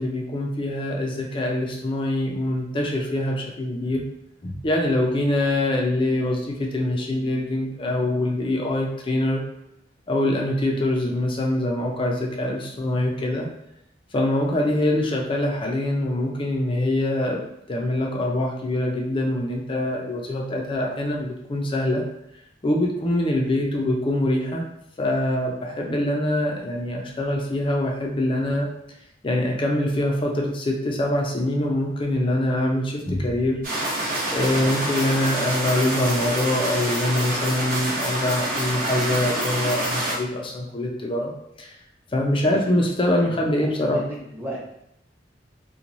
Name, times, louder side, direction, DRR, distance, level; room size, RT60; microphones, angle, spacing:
voice 1, 0.0-4.0 4.4-9.4 10.1-13.5 14.1-17.4 17.7-22.0 22.6-24.6 25.0-28.7 29.2-33.6 34.3-41.3 41.6-41.7 42.1-44.0, left 1 dB, 30° left, 0 dB, 0.4 m, -24 dB
sound 1, 33.6-40.1, right 1 dB, 50° right, 0.9 m, -27 dB
voice 2, 42.4-42.8 43.1-44.6, right 1 dB, 10° right, -6 dB, 0.8 m, -37 dB
3.0 x 2.2 x 2.5 m, 0.79 s
head